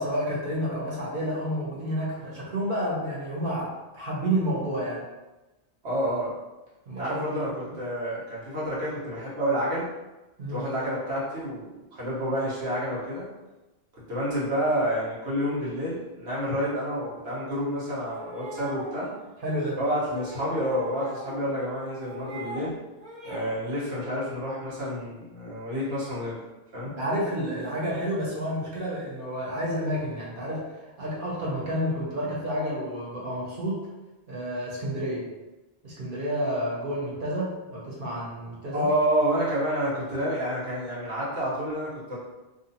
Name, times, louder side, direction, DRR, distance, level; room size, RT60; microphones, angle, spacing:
voice 1, 0.0-5.1 6.9-7.2 10.4-10.7 19.4-19.8 27.0-30.7 31.0-33.9 34.3-35.3 35.8-38.9, equal, 60° right, -6 dB, 0.8 m, -30 dB
voice 2, 5.8-6.3 7.0-9.9 10.5-13.3 13.9-19.1 19.8-22.8 23.2-26.4 26.7-26.9 38.7-42.2, equal, 85° right, -9 dB, 1.3 m, -29 dB
sound 1, 18.0-19.1 20.1-21.5 21.8-22.7 23.0-23.5, right 1 dB, 25° right, 1.0 m, -40 dB
2.6 x 2.4 x 2.7 m, 1.1 s
omnidirectional pair, 1.1 m